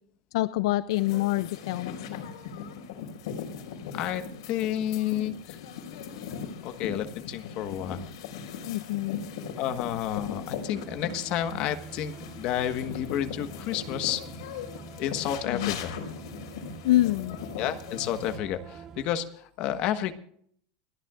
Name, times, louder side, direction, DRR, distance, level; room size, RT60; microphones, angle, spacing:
voice 1, 0.3-2.3 8.7-9.2 15.5-15.8 16.8-17.4, left 16 dB, 65° left, 15 dB, 0.5 m, -26 dB
sound 1, 0.9-18.4, left 7 dB, 90° left, 4.6 m, -39 dB
voice 2, 3.9-5.6 6.6-8.1 9.6-14.2 15.0-15.9 17.6-20.1, left 11 dB, 40° left, 8 dB, 1.3 m, -30 dB
sound 2, 10.7-19.1, right 7 dB, 20° right, 0.7 m, -46 dB
29.5 x 10.5 x 2.5 m, 0.62 s
supercardioid pair, 175°, 3 cm